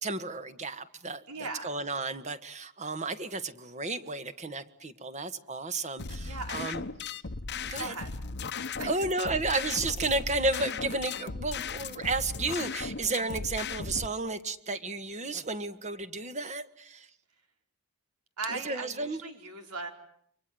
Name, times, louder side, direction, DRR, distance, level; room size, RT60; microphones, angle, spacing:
voice 1, 0.0-6.8 7.7-7.9 8.8-17.1 18.5-19.2, right 3 dB, 30° right, 11 dB, 1.7 m, -33 dB
voice 2, 1.3-1.7 6.2-6.9 7.8-8.1 8.8-9.0 18.4-19.9, right 3 dB, 85° right, 5 dB, 5.1 m, -38 dB
sound 1, 6.0-14.1, left 4 dB, 50° left, 1.1 m, -37 dB
29.5 x 25.0 x 7.8 m, 0.68 s
head